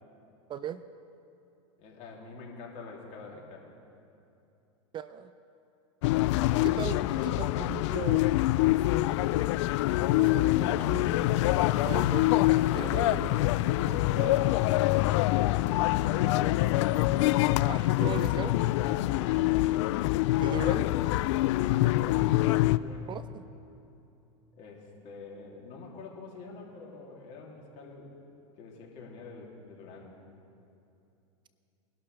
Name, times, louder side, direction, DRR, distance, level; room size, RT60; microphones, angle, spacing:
voice 1, 0.5-0.8 4.9-5.3 6.5-8.5 10.1-14.8 17.7-18.6 20.4-20.9 23.1-23.4, right 9 dB, 30° right, 13 dB, 0.4 m, -39 dB
voice 2, 1.8-3.7 19.1-19.9 21.5-22.4 22.7-23.1 24.6-28.1 28.6-30.2, left 4 dB, 50° left, -2 dB, 2.9 m, -46 dB
sound 1, 6.0-22.8, left 16 dB, 65° left, 0.4 m, -25 dB
21.5 x 12.0 x 3.4 m, 2.7 s
hypercardioid pair, 105°, 16 cm